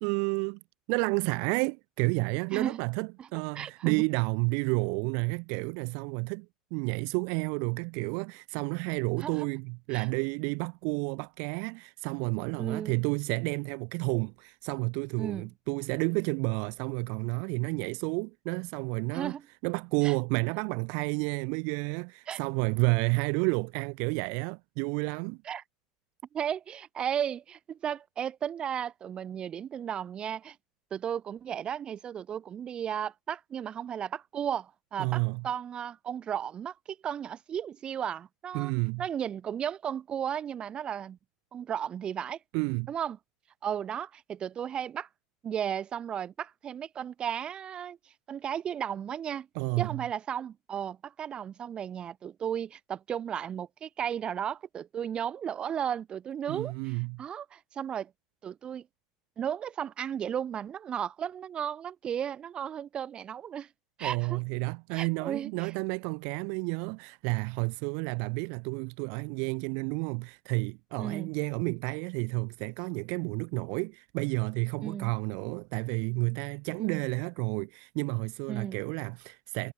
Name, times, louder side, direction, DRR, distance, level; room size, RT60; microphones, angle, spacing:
voice 1, 0.0-0.6 0.9-6.5 6.7-19.3 19.6-25.4 35.0-35.4 38.5-39.0 42.5-42.9 49.6-50.0 56.5-57.2 64.0-79.7, right 39 dB, 65° right, 0.4 m, -31 dB
voice 2, 3.5-4.0 9.2-9.5 9.9-10.1 12.6-12.9 15.2-15.5 19.1-19.4 20.0-20.1 22.3-22.4 25.4-25.6 26.3-30.6 30.9-38.7 39.0-41.2 41.5-42.4 42.9-43.2 43.6-45.1 45.4-48.0 48.3-49.5 49.8-58.1 58.4-58.8 59.4-63.7 64.0-64.4 64.9-65.7 71.0-71.3 74.8-75.1 76.8-77.0 78.5-78.8, right 9 dB, 35° right, 0.8 m, -34 dB
hypercardioid pair, 95°, 3 cm